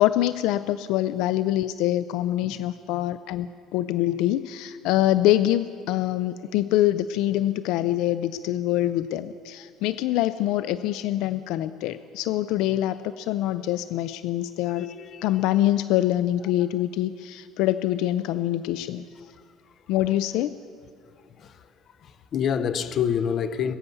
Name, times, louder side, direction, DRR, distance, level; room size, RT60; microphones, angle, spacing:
voice 1, 0.0-14.9 15.2-19.0 19.9-20.6, left 13 dB, 75° left, 0.4 m, -25 dB
voice 2, 14.8-15.2 22.3-23.8, left 8 dB, 40° left, 0.7 m, -26 dB
20.0 x 9.4 x 7.0 m
cardioid pair, 150°, 0 cm